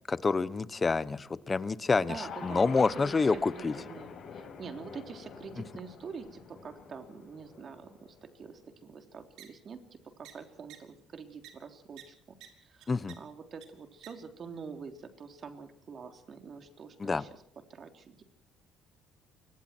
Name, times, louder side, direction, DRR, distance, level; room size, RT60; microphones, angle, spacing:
voice 1, 0.1-3.7 12.9-13.2 17.0-17.2, left 4 dB, 20° left, 16 dB, 1.0 m, -28 dB
sound 1, 2.0-8.3, left 6 dB, 50° left, 7.4 m, -46 dB
voice 2, 2.0-12.1 12.6-17.3 17.7-18.2, right 5 dB, 40° right, 6 dB, 3.4 m, -46 dB
sound 2, 9.4-9.5 10.2-10.3 10.7-10.8 11.4-11.5 12.0-12.1 12.4-12.5 12.8-13.1 13.6-13.7 14.0-14.1, right 13 dB, 80° right, 5.5 m, -48 dB
29.0 x 25.0 x 4.5 m, 0.64 s
cardioid pair, 140°, 0 cm